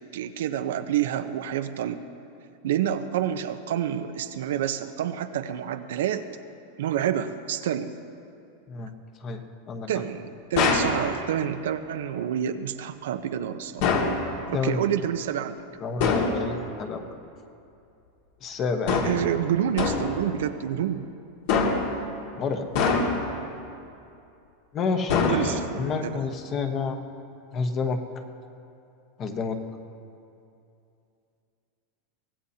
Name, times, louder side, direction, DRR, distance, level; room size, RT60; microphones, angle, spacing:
voice 1, 0.1-2.0 2.6-6.3 6.8-7.9 9.9-13.9 14.5-15.6 18.9-21.1 25.3-25.6 26.0-26.2, right 10 dB, 85° right, 8 dB, 0.8 m, -28 dB
voice 2, 9.2-9.9 14.5-14.9 15.8-17.0 18.4-19.0 22.4-22.7 24.7-27.0 27.5-28.0 29.2-29.6, left 4 dB, 30° left, 6 dB, 1.1 m, -29 dB
sound 1, 10.6-11.0 13.8-14.2 16.0-16.4 18.9-19.3 19.8-20.2 21.5-22.0 22.8-23.3 25.1-25.8, left 4 dB, 60° left, 2.1 m, -23 dB
24.0 x 17.5 x 2.9 m, 2.6 s
supercardioid pair, 150°, 0 cm